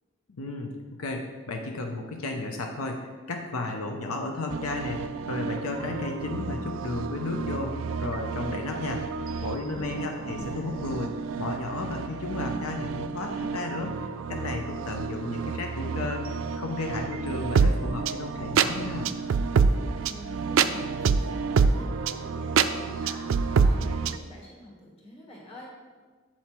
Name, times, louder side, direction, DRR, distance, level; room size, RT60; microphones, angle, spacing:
voice 1, 0.3-0.7 1.0-9.1 9.4-11.1 11.4-16.2 16.5-19.1, left 3 dB, 85° left, 2 dB, 0.7 m, -33 dB
sound 1, 4.5-24.2, right 5 dB, 65° right, 0.3 m, -28 dB
voice 2, 9.7-10.8 19.8-25.7, left 1 dB, 30° left, -4 dB, 1.6 m, -46 dB
7.7 x 4.3 x 4.4 m, 1.4 s
head